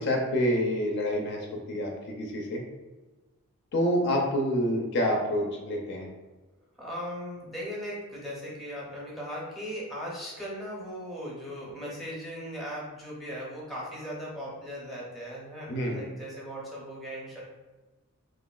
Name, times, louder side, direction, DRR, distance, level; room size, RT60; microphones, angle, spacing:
voice 1, 0.0-2.6 3.7-6.1 15.7-16.0, equal, 50° left, 1 dB, 0.4 m, -27 dB
voice 2, 6.8-17.4, equal, ahead, -5 dB, 0.6 m, -38 dB
2.9 x 2.3 x 2.3 m, 1.2 s
head